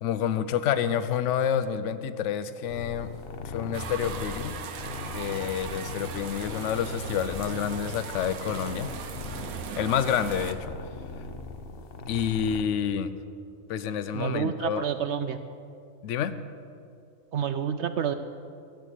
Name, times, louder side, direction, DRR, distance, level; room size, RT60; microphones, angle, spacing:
voice 1, 0.0-3.1 3.4-4.6 5.1-9.0 9.8-10.8 12.1-13.1 13.7-14.8 16.0-16.3, left 8 dB, 65° left, 13 dB, 0.9 m, -28 dB
sound 1, 2.7-12.6, left 2 dB, 50° left, 1.1 m, -39 dB
sound 2, 3.7-10.5, right 7 dB, 85° right, 1.3 m, -39 dB
voice 2, 14.1-15.4 17.3-18.1, right 8 dB, 65° right, 10 dB, 0.8 m, -29 dB
12.5 x 9.1 x 8.3 m, 2.4 s
omnidirectional pair, 1.4 m